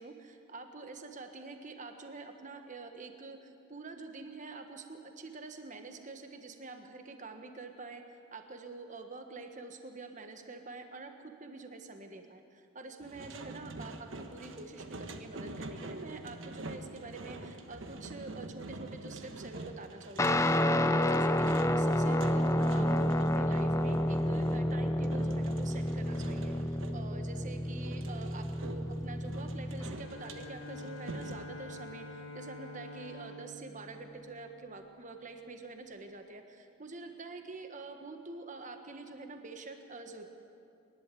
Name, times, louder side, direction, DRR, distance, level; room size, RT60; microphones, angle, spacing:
voice 1, 0.0-8.0 8.3-11.1 11.4-40.3, right 3 dB, 35° right, 6 dB, 1.3 m, -46 dB
sound 1, 13.0-27.1 27.8-31.5, right 2 dB, 60° right, 1.2 m, -46 dB
Guitar, 20.2-29.9, left 1 dB, 15° left, 0.5 m, -29 dB
Bowed string instrument, 30.0-35.1, left 2 dB, 70° left, 1.5 m, -47 dB
26.5 x 12.0 x 8.3 m, 2.7 s
head